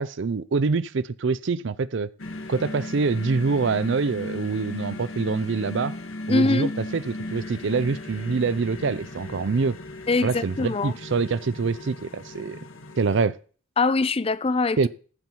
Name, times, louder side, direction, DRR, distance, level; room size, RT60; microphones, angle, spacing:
voice 1, 0.0-2.1 2.5-5.9 6.3-9.8 10.2-12.6 13.0-13.3 14.8-14.9, right 4 dB, 60° right, 0.5 m, -25 dB
sound 1, 2.2-13.3, left 1 dB, 75° left, 1.6 m, -37 dB
voice 2, 6.3-6.7 10.1-10.9 13.8-14.9, left 3 dB, 30° left, 0.5 m, -23 dB
14.5 x 5.7 x 4.5 m
head